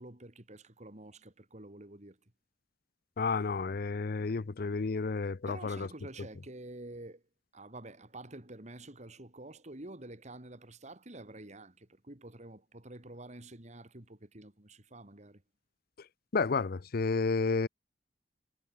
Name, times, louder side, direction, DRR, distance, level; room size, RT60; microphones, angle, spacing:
voice 1, 0.0-2.2 5.5-7.2 7.5-15.4, right 2 dB, 40° right, 2.7 m, -48 dB
voice 2, 3.2-5.9 16.3-17.7, left 4 dB, 55° left, 0.6 m, -31 dB
head